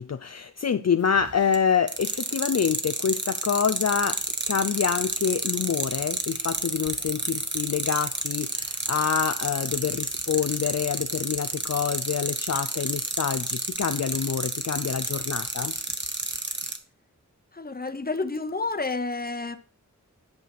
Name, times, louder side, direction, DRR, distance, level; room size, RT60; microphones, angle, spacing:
voice 1, 0.0-4.2 4.5-15.7, left 7 dB, 55° left, 0.5 m, -26 dB
sound 1, 1.1-1.6 1.9-16.8, right 2 dB, 35° right, 1.1 m, -29 dB
voice 2, 17.5-19.6, left 3 dB, 30° left, 0.9 m, -30 dB
10.5 x 4.7 x 6.0 m
wide cardioid pair, 65°, 31 cm